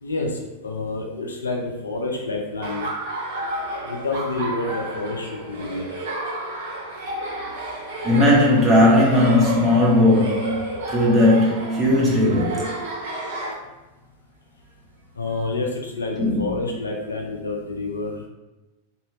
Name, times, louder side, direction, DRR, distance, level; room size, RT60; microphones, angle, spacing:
voice 1, 0.0-2.9 3.8-5.9 15.2-18.3, left 2 dB, 75° left, 0.4 m, -28 dB
Laughter, 2.6-13.5, right 2 dB, 55° right, 0.6 m, -31 dB
voice 2, 8.0-12.7 16.2-16.4, left 1 dB, 15° right, 1.1 m, -17 dB
3.0 x 2.7 x 2.7 m
figure-of-eight pair, 90°, 0 cm